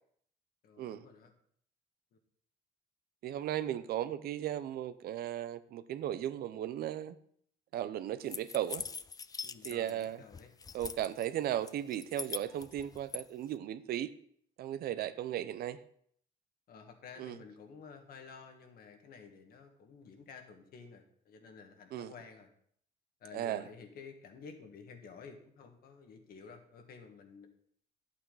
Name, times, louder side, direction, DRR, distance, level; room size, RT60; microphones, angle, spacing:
voice 1, 0.6-1.3 2.1-2.2 3.7-3.8 9.4-10.5 15.3-15.4 16.7-22.5 23.2-27.5, left 5 dB, 60° left, 5 dB, 1.9 m, -52 dB
voice 2, 3.2-7.2 7.7-8.8 9.6-10.2 10.7-14.1 14.6-15.8 17.2-17.4 21.9-22.1 23.3-23.6, right 11 dB, 65° right, 13 dB, 0.7 m, -36 dB
sound 1, 8.3-10.0 10.3-11.2 11.7-13.2, left 5 dB, 20° left, 0.4 m, -42 dB
11.0 x 8.4 x 4.1 m, 0.63 s
cardioid pair, 110°, 17 cm